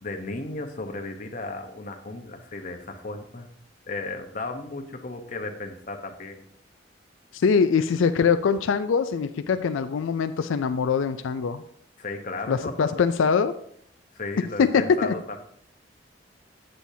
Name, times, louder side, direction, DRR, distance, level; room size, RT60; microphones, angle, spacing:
voice 1, 0.0-3.5 3.9-6.5 12.0-12.9 14.1-15.4, left 2 dB, 40° left, 5 dB, 0.9 m, -35 dB
voice 2, 7.3-11.6 12.5-13.5 14.6-15.1, left 6 dB, 85° left, 10 dB, 0.4 m, -23 dB
8.3 x 7.6 x 2.7 m, 0.67 s
head